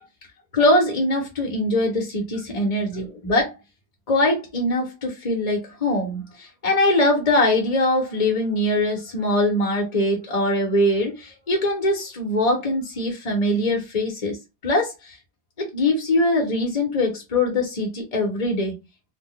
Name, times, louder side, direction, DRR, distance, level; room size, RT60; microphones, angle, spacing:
voice 1, 0.5-3.5 4.1-14.4 14.6-15.1 15.6-18.7, left 1 dB, 40° left, 0.8 m, -22 dB
2.5 x 2.1 x 3.7 m
omnidirectional pair, 1.1 m